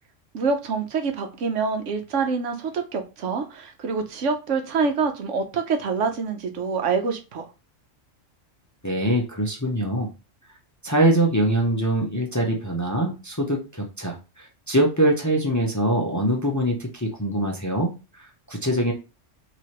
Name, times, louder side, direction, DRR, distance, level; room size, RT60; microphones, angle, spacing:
voice 1, 0.3-7.5, right 5 dB, 75° right, 1.1 m, -26 dB
voice 2, 8.8-10.1 10.8-18.9, right 1 dB, 20° left, 0.6 m, -23 dB
4.7 x 3.0 x 2.9 m
omnidirectional pair, 1.3 m